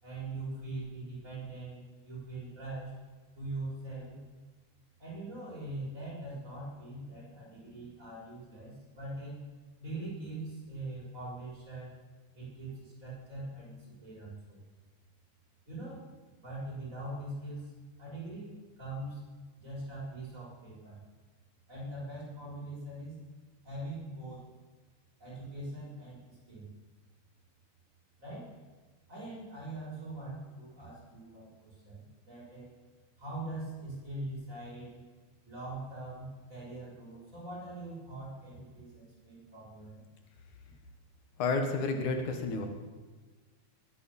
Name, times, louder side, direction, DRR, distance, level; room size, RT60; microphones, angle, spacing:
voice 1, 0.0-3.0 3.4-4.2 5.0-9.3 9.8-11.9 12.3-14.6 15.7-16.1 16.3-17.7 18.0-19.2 19.6-21.0 21.7-23.2 23.6-24.5 25.2-26.7 28.2-28.5 29.1-32.7 33.2-35.0 35.4-40.0, right 2 dB, 25° right, -5 dB, 6.8 m, -42 dB
voice 2, 41.4-42.7, left 3 dB, 80° left, 5 dB, 3.0 m, -30 dB
21.5 x 8.9 x 7.2 m, 1.4 s
omnidirectional pair, 3.4 m